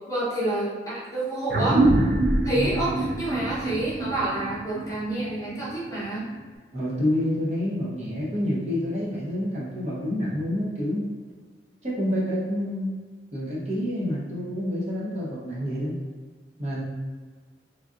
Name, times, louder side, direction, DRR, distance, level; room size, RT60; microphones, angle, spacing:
voice 1, 0.1-1.8 2.4-6.3, right 1 dB, 20° left, -8 dB, 0.8 m, -28 dB
sound 1, 1.5-6.4, right 2 dB, 55° right, 0.3 m, -25 dB
voice 2, 6.7-11.1 11.8-12.9 13.3-15.9 16.6-16.8, left 1 dB, 40° right, -6 dB, 0.8 m, -28 dB
3.2 x 2.5 x 2.4 m, 1.5 s
head